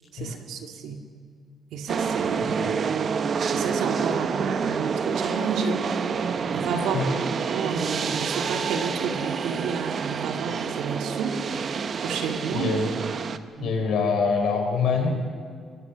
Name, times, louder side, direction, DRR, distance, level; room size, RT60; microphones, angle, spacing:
voice 1, 0.1-1.0 1.7-2.7 3.5-5.8 6.5-7.0 7.5-11.4 12.0-12.7 13.6-13.7, right 6 dB, 85° right, 4 dB, 2.2 m, -31 dB
sound 1, 1.9-13.4, right 6 dB, 50° right, 1.0 m, -28 dB
voice 2, 2.4-2.8 6.8-7.1 12.5-12.9 13.6-15.1, left 5 dB, 75° left, 4 dB, 4.5 m, -25 dB
22.5 x 21.0 x 6.4 m, 2.1 s
cardioid pair, 90°, 0 cm